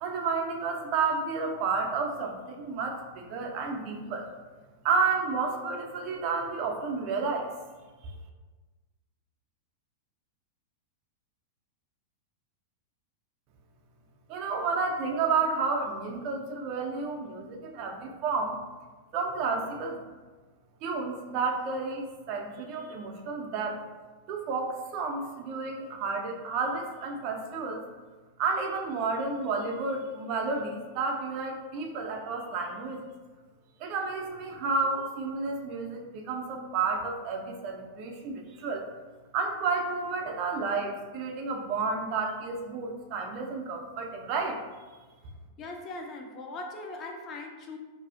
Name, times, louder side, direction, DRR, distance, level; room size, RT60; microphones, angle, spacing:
voice 1, 0.0-4.3 4.8-7.5 14.3-18.6 19.1-20.0 20.8-23.8 24.3-27.8 28.4-33.0 33.8-38.9 39.3-44.6, right 4 dB, 45° right, 2 dB, 0.4 m, -31 dB
voice 2, 45.6-47.8, left 2 dB, 35° left, 2 dB, 0.4 m, -40 dB
2.5 x 2.3 x 2.3 m, 1.3 s
hypercardioid pair, 95°, 0 cm